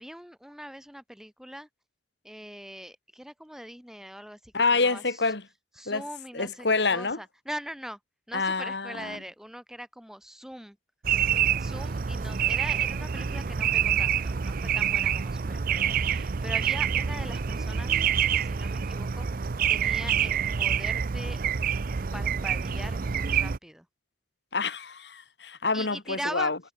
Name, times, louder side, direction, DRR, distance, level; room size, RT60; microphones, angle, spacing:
voice 1, 0.0-1.7 2.2-5.2 5.8-8.0 8.3-10.8 11.6-18.0 18.3-21.4 22.1-23.9 25.7-26.5, equal, 5° right, 6.5 m, -41 dB
voice 2, 4.5-5.4 5.9-6.0 6.3-7.2 8.3-9.2 24.5-26.6, left 3 dB, 70° left, 2.1 m, -27 dB
sound 1, 11.0-23.6, right 8 dB, 50° right, 0.5 m, -27 dB
head